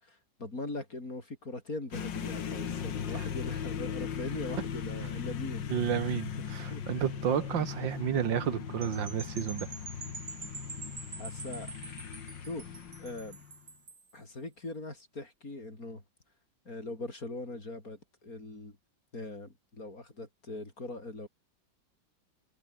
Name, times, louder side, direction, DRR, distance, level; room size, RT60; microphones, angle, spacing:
voice 1, 0.0-6.2 6.7-7.0 11.2-11.7 12.4-13.4 14.1-16.0 16.7-18.8 19.1-21.3, left 2 dB, 50° left, 6.0 m, -41 dB
sound 1, 1.9-13.6, left 8 dB, 80° left, 2.3 m, -38 dB
voice 2, 5.7-9.7, right 8 dB, 85° right, 2.2 m, -31 dB
sound 2, 8.8-14.1, right 4 dB, 60° right, 4.1 m, -46 dB
omnidirectional pair, 2.0 m